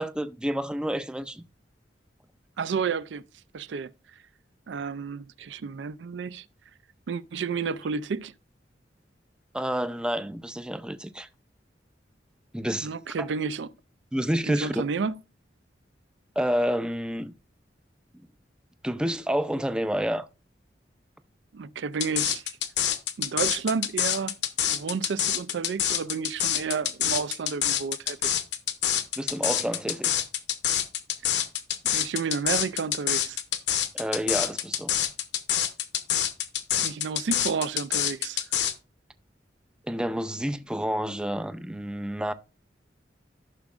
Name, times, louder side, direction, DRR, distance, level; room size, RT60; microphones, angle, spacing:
voice 1, 0.0-1.4 9.5-11.3 12.5-12.9 13.2-13.3 14.1-14.7 16.4-17.3 18.8-20.3 29.2-30.1 33.9-35.0 39.9-42.3, equal, 5° right, 0.4 m, -29 dB
voice 2, 2.6-3.3 3.5-3.9 4.7-6.5 7.1-8.3 12.8-13.7 14.5-15.2 21.5-22.4 23.2-24.4 24.7-28.2 31.8-33.4 36.7-38.4, right 5 dB, 75° right, 0.4 m, -31 dB
sound 1, 22.0-38.7, left 10 dB, 70° left, 0.9 m, -26 dB
14.0 x 6.1 x 2.4 m
head